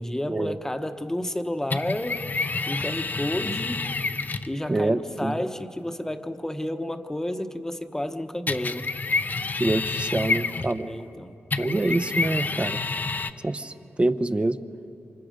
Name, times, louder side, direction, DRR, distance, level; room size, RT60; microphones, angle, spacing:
voice 1, 0.0-2.2 2.7-3.9 4.5-8.9 10.8-11.3, left 1 dB, 10° left, 7 dB, 1.0 m, -31 dB
sound 1, 1.7-4.5 8.5-10.9 11.5-13.3, left 4 dB, 40° left, 0.7 m, -28 dB
voice 2, 4.7-5.4 9.6-10.9 11.6-12.8 13.4-13.7 14.0-14.6, right 2 dB, 25° right, 11 dB, 0.8 m, -25 dB
28.5 x 26.0 x 5.2 m, 2.8 s
wide cardioid pair, 95°, 5 cm